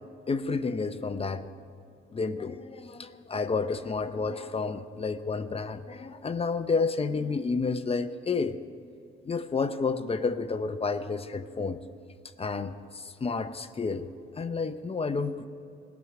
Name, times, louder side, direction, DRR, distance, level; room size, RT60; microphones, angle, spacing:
voice 1, 0.3-1.5 2.1-8.6 9.2-11.8 12.4-14.1 14.3-15.5, left 4 dB, 30° left, 9 dB, 0.7 m, -30 dB
17.5 x 6.3 x 9.5 m, 2.6 s
cardioid pair, 90°, 20 cm